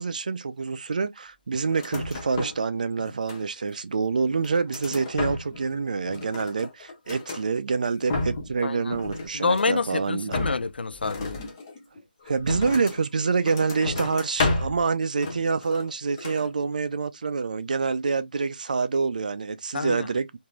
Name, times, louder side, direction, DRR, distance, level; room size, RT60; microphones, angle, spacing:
voice 1, 0.0-10.4 12.3-20.4, right 4 dB, 50° right, 0.4 m, -27 dB
sound 1, 1.7-2.7 3.0-3.7 4.2-5.7 6.0-7.5 7.9-8.6 8.9-9.8 10.3-13.1 13.4-14.9 15.2-15.9 16.2-16.5, left 2 dB, 20° left, 0.7 m, -32 dB
voice 2, 8.6-9.0 9.3-11.4 19.7-20.1, left 4 dB, 80° left, 0.4 m, -27 dB
3.0 x 2.6 x 2.2 m
hypercardioid pair, 170°, 5 cm